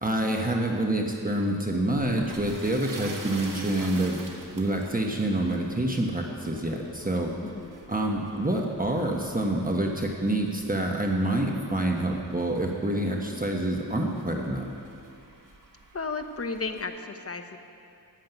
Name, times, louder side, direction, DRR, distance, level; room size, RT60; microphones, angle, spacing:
voice 1, 0.0-4.2 4.5-7.3 7.9-14.7, right 1 dB, 20° right, 0 dB, 1.2 m, -27 dB
sound 1, 1.9-16.8, right 2 dB, 55° right, 1.6 m, -47 dB
voice 2, 7.4-7.7 15.9-17.6, left 4 dB, 40° left, 7 dB, 0.9 m, -34 dB
13.5 x 7.5 x 9.2 m, 2.5 s
wide cardioid pair, 95°, 38 cm